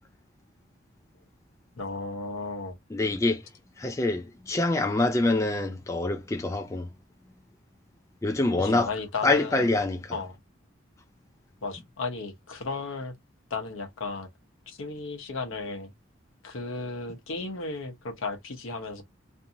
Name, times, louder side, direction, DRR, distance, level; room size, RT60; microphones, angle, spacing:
voice 1, 1.8-2.8 8.6-9.8 10.1-10.4 11.6-13.1 13.5-14.3 14.7-15.9 16.4-19.0, left 3 dB, 80° left, 0.8 m, -34 dB
voice 2, 2.9-3.4 3.8-6.9 8.2-8.9 9.2-10.1, left 2 dB, 15° left, 0.3 m, -25 dB
2.6 x 2.5 x 2.7 m
head